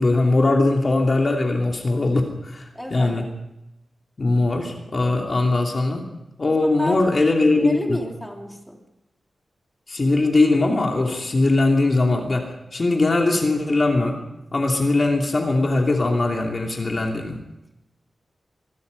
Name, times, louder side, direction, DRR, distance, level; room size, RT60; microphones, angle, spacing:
voice 1, 0.0-3.3 4.2-6.1 6.4-8.0 9.9-14.2 14.5-17.4, left 2 dB, 35° left, 1 dB, 2.9 m, -20 dB
voice 2, 2.7-3.3 6.5-7.0 7.6-8.8, equal, 5° left, 1 dB, 3.4 m, -32 dB
25.5 x 21.5 x 5.4 m, 0.93 s
wide cardioid pair, 175°, 0 cm